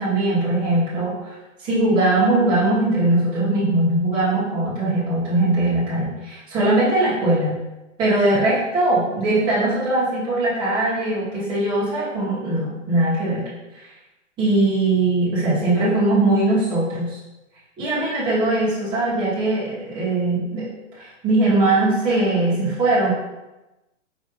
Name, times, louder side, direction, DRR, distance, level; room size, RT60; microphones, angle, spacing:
voice 1, 0.0-1.3 1.6-7.6 8.0-13.4 14.4-17.2 17.8-20.7 21.0-23.1, right 2 dB, 10° right, -10 dB, 1.0 m, -20 dB
4.6 x 2.6 x 3.0 m, 1.0 s
hypercardioid pair, 170°, 37 cm